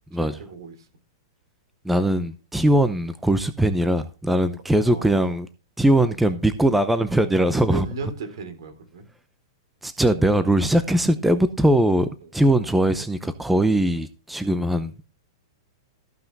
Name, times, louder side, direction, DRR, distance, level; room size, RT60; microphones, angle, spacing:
voice 1, 0.2-0.9 4.8-5.4 7.7-9.1 12.2-12.3, right 4 dB, 75° right, 3.8 m, -36 dB
voice 2, 1.8-5.5 5.8-7.9 9.8-14.9, right 1 dB, 5° right, 0.7 m, -21 dB
14.5 x 5.7 x 4.1 m
hypercardioid pair, 145°, 2 cm